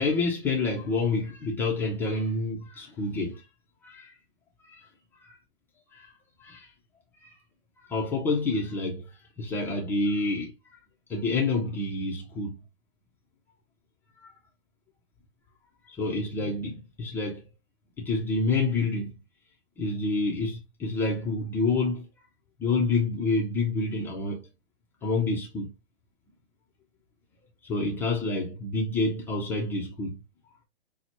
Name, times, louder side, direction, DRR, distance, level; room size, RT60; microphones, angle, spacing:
voice 1, 0.0-3.4 3.8-4.1 5.9-6.1 6.4-6.7 7.2-7.3 7.8-9.1 9.4-10.5 11.1-12.6 14.2-14.3 15.9-17.4 18.0-19.1 19.8-22.1 22.6-24.4 25.0-25.7 27.6-30.2, left 3 dB, 5° left, 0.3 m, -28 dB
5.6 x 2.0 x 2.8 m
hypercardioid pair, 135°, 32 cm